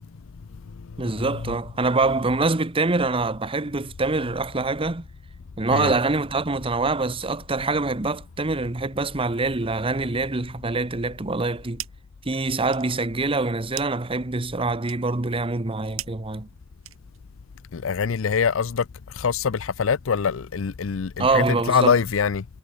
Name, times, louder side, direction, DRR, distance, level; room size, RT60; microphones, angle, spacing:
voice 1, 1.0-5.1 5.6-11.8 12.3-16.5 21.2-21.9, right 3 dB, 25° right, 0.9 m, -25 dB
sound 1, 11.3-12.2 12.5-17.4, right 13 dB, 90° right, 3.6 m, -41 dB
voice 2, 17.7-22.4, left 6 dB, 70° left, 0.5 m, -24 dB
head